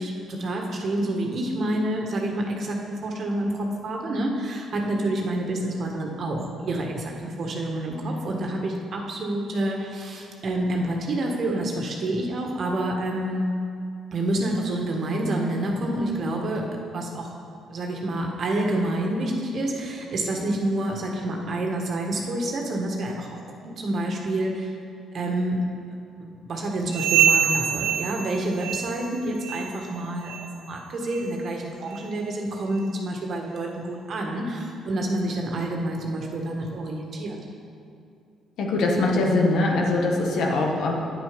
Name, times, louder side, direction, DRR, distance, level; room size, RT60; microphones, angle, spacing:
voice 1, 0.0-2.8 3.0-13.4 14.1-17.3 17.7-23.4 23.6-24.7 25.1-25.6 26.2-37.4, right 1 dB, 55° right, 1 dB, 1.7 m, -28 dB
sound 1, 26.9-29.1 29.4-29.8 30.2-30.5 31.1-31.2 31.9-32.0 32.8-32.9, right 8 dB, 80° right, 0.6 m, -24 dB
voice 2, 38.6-40.9, left 2 dB, 70° left, 0 dB, 1.5 m, -22 dB
9.0 x 7.9 x 5.2 m, 2.5 s
supercardioid pair, 65°, 0 cm